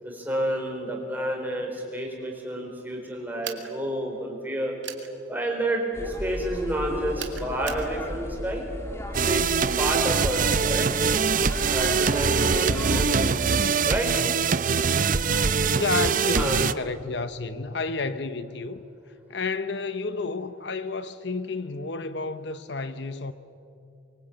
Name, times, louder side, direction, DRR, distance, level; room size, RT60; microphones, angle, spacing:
voice 1, 0.0-4.7 5.3-8.7 9.2-10.9 11.7-14.1 16.2-16.5, right 1 dB, 10° right, 0 dB, 4.6 m, -30 dB
sound 1, 3.4-3.7 4.8-5.1 7.2-7.9, right 9 dB, 70° right, 2.2 m, -37 dB
sound 2, 5.9-13.0, equal, 15° left, 2.1 m, -35 dB
sound 3, 9.1-16.7, right 5 dB, 40° right, 0.6 m, -23 dB
voice 2, 12.4-13.2 15.7-18.8 19.3-23.3, left 3 dB, 60° left, 12 dB, 0.8 m, -31 dB
24.5 x 23.5 x 8.8 m, 2.7 s
head